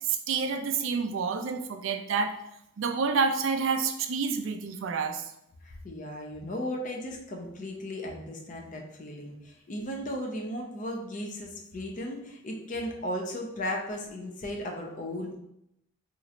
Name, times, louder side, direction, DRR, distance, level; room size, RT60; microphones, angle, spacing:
voice 1, 0.1-2.3 2.8-5.3, right 5 dB, 65° right, 7 dB, 0.4 m, -28 dB
voice 2, 5.6-15.4, left 1 dB, 35° left, 1 dB, 0.6 m, -36 dB
2.9 x 2.5 x 4.1 m, 0.79 s
head